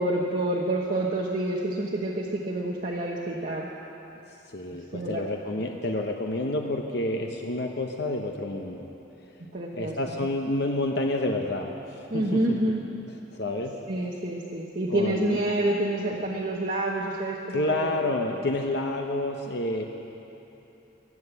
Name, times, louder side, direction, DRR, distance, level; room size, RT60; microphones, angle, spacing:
voice 1, 0.0-3.7 4.7-5.2 9.5-10.2 12.1-12.8 13.9-17.9, right 1 dB, 40° right, -2 dB, 1.0 m, -28 dB
voice 2, 4.5-8.9 9.7-12.4 13.3-13.8 14.9-15.4 17.5-19.8, left 2 dB, 55° left, 2 dB, 0.8 m, -29 dB
22.5 x 7.6 x 8.1 m, 3.0 s
head